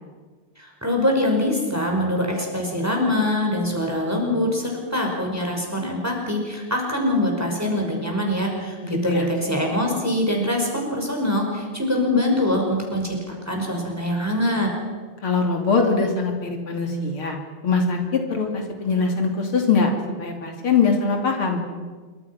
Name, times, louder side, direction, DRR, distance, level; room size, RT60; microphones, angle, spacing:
voice 1, 0.6-8.8 9.0-14.7, left 1 dB, 5° right, 0 dB, 5.5 m, -23 dB
voice 2, 8.8-9.3 15.2-17.4 17.6-19.9 20.2-21.6, left 4 dB, 75° left, 2 dB, 3.7 m, -22 dB
27.0 x 24.5 x 6.0 m, 1.5 s
omnidirectional pair, 2.4 m